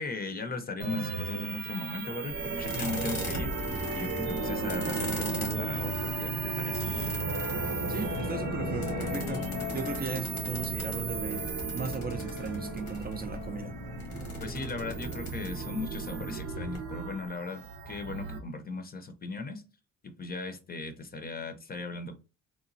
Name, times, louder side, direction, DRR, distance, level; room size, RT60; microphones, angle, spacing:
voice 1, 0.0-3.6 3.9-6.8 14.4-19.6 20.0-22.2, left 3 dB, 30° left, 0.6 m, -38 dB
sound 1, 0.8-18.4, right 5 dB, 90° right, 0.6 m, -35 dB
sound 2, 2.2-17.6, left 8 dB, 75° left, 0.6 m, -41 dB
sound 3, 2.3-16.8, left 1 dB, 90° left, 1.2 m, -42 dB
voice 2, 7.9-11.5 11.7-13.8, right 5 dB, 30° right, 0.4 m, -37 dB
3.0 x 2.1 x 2.5 m
cardioid pair, 90°, 30 cm